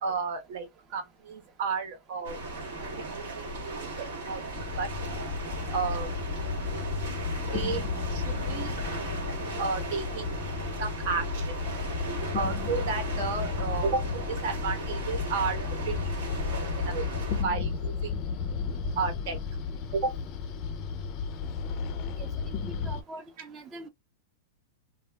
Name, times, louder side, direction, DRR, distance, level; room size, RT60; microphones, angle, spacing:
voice 1, 0.0-2.4 2.8-4.9 5.7-6.1 7.5-7.8 8.1-8.8 9.6-10.3 10.8-11.6 12.3-14.0 14.3-16.1 16.8-17.1 17.4-18.1 19.0-19.4 19.9-20.1, right 5 dB, 55° right, 1.0 m, -32 dB
sound 1, 2.2-17.4, right 2 dB, 80° right, 1.1 m, -37 dB
sound 2, 4.6-23.0, left 5 dB, 40° left, 0.4 m, -33 dB
voice 2, 22.8-23.9, right 1 dB, 25° right, 0.6 m, -43 dB
2.2 x 2.0 x 3.3 m
supercardioid pair, 145°, 0 cm